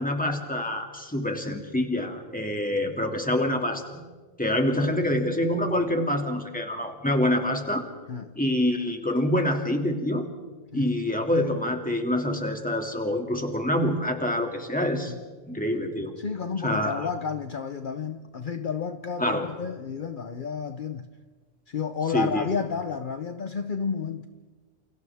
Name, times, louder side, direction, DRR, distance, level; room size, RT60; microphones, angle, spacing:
voice 1, 0.0-4.0 4.4-7.8 8.4-10.2 10.7-15.1 15.4-16.1 16.6-17.0 19.2-19.4 22.1-22.5, left 1 dB, 10° left, 2.3 m, -26 dB
voice 2, 16.2-21.1 21.7-24.3, left 6 dB, 55° left, 1.0 m, -31 dB
29.0 x 28.5 x 3.5 m
omnidirectional pair, 1.1 m